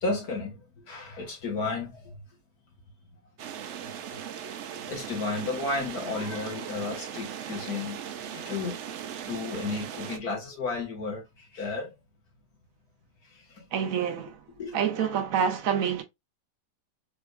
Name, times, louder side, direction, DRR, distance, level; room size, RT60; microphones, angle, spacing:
voice 1, 0.0-2.1 4.3-8.0 8.3-8.8 9.2-11.9 13.5-13.6 14.6-14.8, left 3 dB, 60° left, 2.0 m, -33 dB
sound 1, 3.4-10.2, right 9 dB, 85° right, 0.6 m, -38 dB
voice 2, 13.7-14.4 14.7-16.0, right 8 dB, 65° right, 0.9 m, -27 dB
3.8 x 3.4 x 2.4 m
omnidirectional pair, 1.9 m